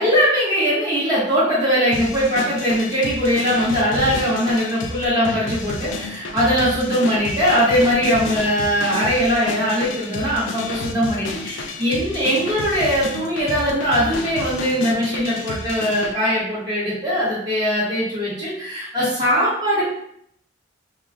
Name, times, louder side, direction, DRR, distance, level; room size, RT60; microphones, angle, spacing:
voice 1, 0.0-19.8, equal, 20° right, -9 dB, 0.9 m, -20 dB
sound 1, 1.9-16.1, left 3 dB, 85° left, 0.4 m, -31 dB
2.4 x 2.2 x 3.3 m, 0.71 s
head